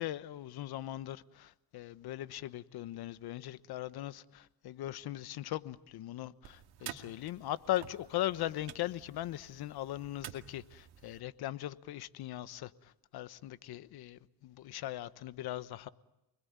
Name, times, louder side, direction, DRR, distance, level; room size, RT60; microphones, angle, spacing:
voice 1, 0.0-12.7 13.1-15.9, left 14 dB, 65° left, 1.1 m, -39 dB
sound 1, 6.4-11.2, right 11 dB, 65° right, 2.4 m, -50 dB
29.0 x 21.5 x 9.5 m
cardioid pair, 105°, 41 cm